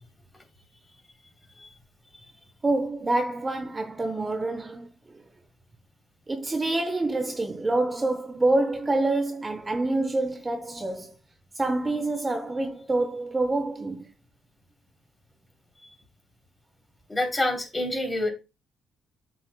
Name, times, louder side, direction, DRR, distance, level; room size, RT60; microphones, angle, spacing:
voice 1, 2.6-5.2 6.3-11.1 11.5-14.1, right 2 dB, 20° right, 0.8 m, -27 dB
voice 2, 17.1-18.3, left 1 dB, 20° left, 3.1 m, -27 dB
7.4 x 6.9 x 2.2 m
cardioid pair, 90°, 0 cm